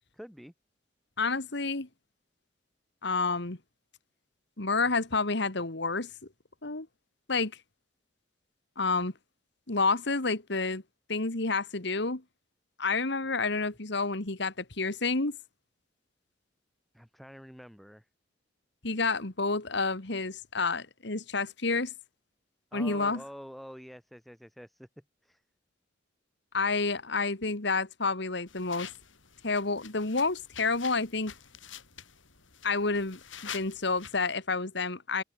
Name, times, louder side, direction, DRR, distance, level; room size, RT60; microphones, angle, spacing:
voice 1, 0.1-0.5 16.9-18.1 22.7-25.4, equal, ahead, 4.4 m, -47 dB
voice 2, 1.2-1.9 3.0-3.6 4.6-6.1 6.6-6.9 7.3-7.5 8.8-9.1 9.7-10.8 11.1-12.2 12.8-15.4 18.8-21.9 22.7-23.2 26.5-28.9 29.4-31.3 32.6-33.2 33.5-35.2, left 3 dB, 65° left, 2.0 m, -29 dB
sound 1, 28.5-34.3, left 8 dB, 85° left, 8.0 m, -47 dB
head